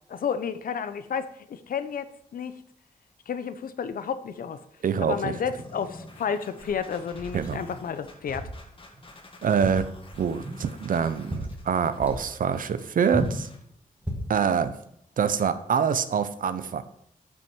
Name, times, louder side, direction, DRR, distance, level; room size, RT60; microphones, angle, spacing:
voice 1, 0.1-2.6 3.3-4.6 5.0-8.5, left 7 dB, 80° left, 12 dB, 0.8 m, -31 dB
voice 2, 4.8-5.3 7.3-7.6 9.4-9.9 10.2-13.5 14.3-14.8 15.2-16.8, right 7 dB, 75° right, 12 dB, 0.8 m, -25 dB
sound 1, 5.6-13.6, left 2 dB, 40° left, 2.0 m, -50 dB
sound 2, 6.6-7.6 8.3-8.6 8.9-9.1 9.5-10.6 11.0-11.7 12.0-12.2 13.1-13.5 14.0-14.4, equal, 10° right, 2.1 m, -34 dB
13.0 x 6.2 x 4.6 m, 0.71 s
wide cardioid pair, 140°, 14 cm